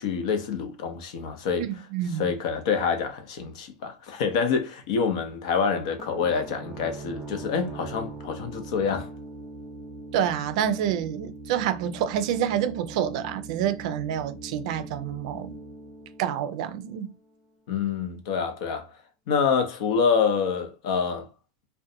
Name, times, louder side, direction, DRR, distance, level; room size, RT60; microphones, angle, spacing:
voice 1, 0.0-1.7 2.2-9.1 17.7-18.9 19.3-21.3, left 6 dB, 70° left, 0.6 m, -26 dB
voice 2, 1.6-2.3 10.1-15.6 16.2-17.1, right 9 dB, 65° right, 0.4 m, -28 dB
sound 1, 6.0-17.5, right 2 dB, 5° right, 0.6 m, -42 dB
2.4 x 2.1 x 2.7 m
hypercardioid pair, 105°, 4 cm